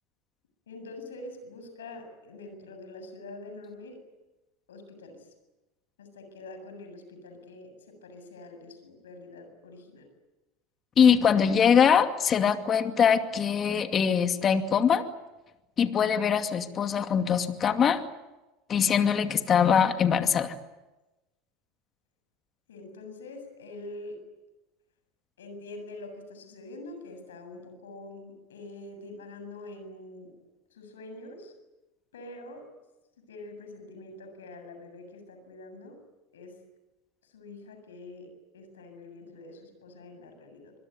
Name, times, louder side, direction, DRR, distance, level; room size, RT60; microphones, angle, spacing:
voice 1, 0.7-4.0 4.7-5.3 6.0-10.1 22.7-24.3 25.4-30.3 30.7-31.5 32.1-32.7 33.2-36.0 36.3-36.6 37.2-40.7, left 2 dB, 85° left, 7 dB, 7.5 m, -45 dB
voice 2, 11.0-15.0 15.8-18.0 18.7-20.5, left 7 dB, 35° left, 7 dB, 2.4 m, -22 dB
26.0 x 22.0 x 9.5 m, 1.1 s
hypercardioid pair, 90°, 0 cm